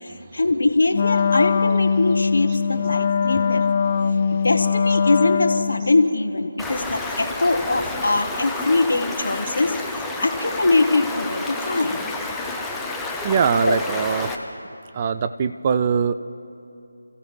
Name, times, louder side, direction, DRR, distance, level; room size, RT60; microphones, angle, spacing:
voice 1, 0.0-3.7 4.3-9.8 10.2-12.0 13.6-13.7, left 2 dB, 70° left, 7 dB, 1.0 m, -22 dB
Wind instrument woodwind instrument, 0.9-6.0, left 6 dB, 35° left, 0.4 m, -21 dB
Stream, 6.6-14.4, left 2 dB, 5° left, 0.8 m, -30 dB
voice 2, 13.2-14.3 14.9-16.2, right 6 dB, 30° right, 11 dB, 0.4 m, -22 dB
29.5 x 15.0 x 3.3 m, 2.8 s
figure-of-eight pair, 160°, 0 cm